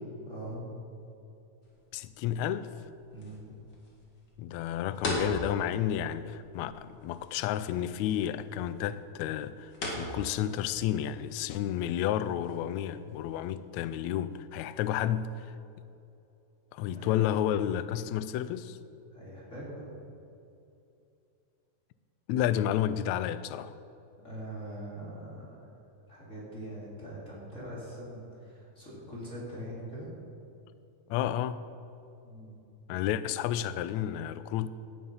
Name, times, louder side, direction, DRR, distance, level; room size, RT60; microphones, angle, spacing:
voice 1, 0.3-0.6 3.1-3.5 16.9-17.2 19.1-20.0 24.2-25.7 26.1-30.1 32.2-32.5, right 1 dB, 20° left, 3.3 m, -42 dB
sound 1, 1.6-14.2, left 1 dB, 40° left, 2.6 m, -42 dB
voice 2, 1.9-2.7 4.4-15.5 16.7-18.8 22.3-23.8 31.1-31.6 32.9-34.7, left 11 dB, 85° left, 1.6 m, -31 dB
16.5 x 9.2 x 5.5 m
omnidirectional pair, 3.8 m